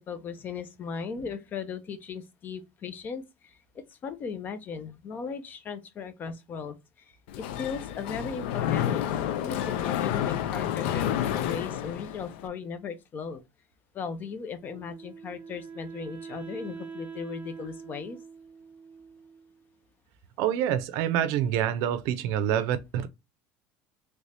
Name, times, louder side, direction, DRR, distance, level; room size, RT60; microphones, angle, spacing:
voice 1, 0.1-3.6 3.9-6.8 7.4-9.0 9.4-13.4 13.9-18.2, left 5 dB, 35° left, 0.5 m, -37 dB
Mechanisms, 7.3-12.5, left 11 dB, 90° left, 0.4 m, -29 dB
Wind instrument woodwind instrument, 14.6-19.7, right 5 dB, 25° right, 0.7 m, -44 dB
voice 2, 20.4-23.1, right 10 dB, 70° right, 0.5 m, -26 dB
3.2 x 2.6 x 3.3 m
cardioid pair, 140°, 6 cm